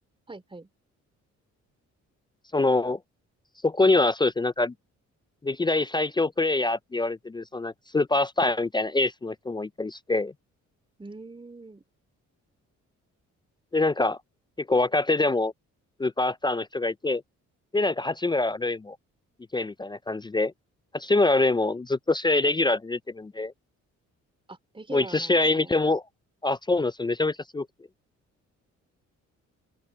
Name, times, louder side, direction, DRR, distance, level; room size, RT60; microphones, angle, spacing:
voice 1, 0.3-0.7 11.0-11.8 24.5-25.8, right 3 dB, 15° right, 4.2 m, -43 dB
voice 2, 2.5-3.0 3.6-4.7 5.4-10.3 13.7-14.2 14.6-15.5 16.0-17.2 17.7-19.0 19.5-20.5 20.9-23.5 24.9-26.0 26.4-27.7, left 2 dB, 15° left, 0.4 m, -25 dB
open air
cardioid pair, 90°, 30 cm